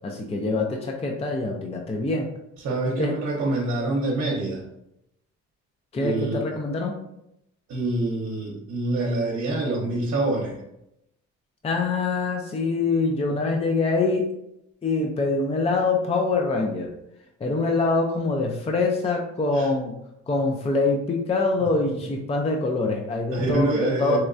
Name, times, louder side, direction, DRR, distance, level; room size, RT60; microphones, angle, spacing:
voice 1, 0.0-2.3 2.9-3.1 5.9-7.0 11.6-14.3 14.8-16.9 17.4-20.0 20.3-24.2, left 3 dB, 20° left, 1 dB, 0.4 m, -24 dB
voice 2, 2.6-4.6 6.0-6.4 7.7-10.6 19.5-19.7 21.9-22.1 23.3-24.2, right 2 dB, 60° right, -2 dB, 0.8 m, -26 dB
4.2 x 2.2 x 2.5 m, 0.81 s
cardioid pair, 90°, 30 cm